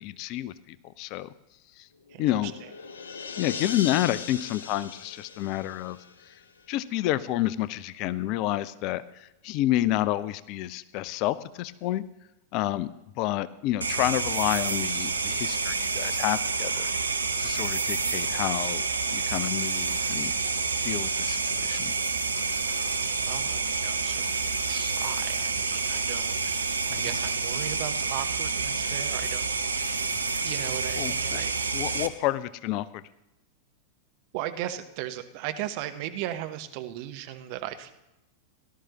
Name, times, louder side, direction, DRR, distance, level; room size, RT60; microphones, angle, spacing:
voice 1, 0.0-1.3 1.8-1.9 2.2-2.5 3.4-6.0 6.7-12.0 12.5-12.9 13.2-16.9 17.4-18.9 19.1-20.3 20.8-21.9 26.9-27.1 31.0-31.4 31.7-33.0, left 14 dB, 40° left, 16 dB, 0.5 m, -29 dB
sound 1, 2.0-6.6, left 5 dB, 65° left, 0.9 m, -39 dB
voice 2, 2.1-2.5 22.6-29.5 30.4-31.6 34.3-37.9, right 12 dB, 45° right, 8 dB, 0.9 m, -37 dB
sound 2, 13.8-32.1, right 4 dB, 75° right, 0.7 m, -28 dB
17.5 x 12.0 x 2.9 m, 0.92 s
figure-of-eight pair, 90°, 0 cm